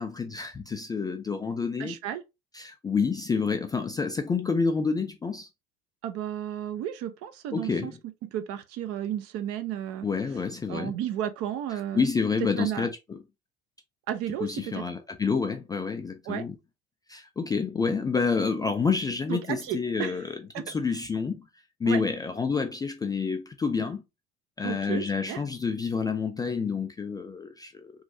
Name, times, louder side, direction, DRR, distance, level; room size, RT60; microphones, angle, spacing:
voice 1, 0.0-2.0 2.5-5.5 7.5-8.0 10.0-10.9 11.7-13.2 14.4-16.5 17.1-21.4 21.8-24.0 24.6-27.9, left 5 dB, 15° left, 0.3 m, -28 dB
voice 2, 1.8-2.2 6.0-7.9 8.2-10.1 10.7-12.1 12.6-12.9 14.1-14.8 16.3-16.4 19.3-20.2 20.5-20.6 21.9-22.0 24.6-25.4, right 10 dB, 45° right, 0.6 m, -33 dB
3.1 x 2.5 x 2.6 m
figure-of-eight pair, 65°, 32 cm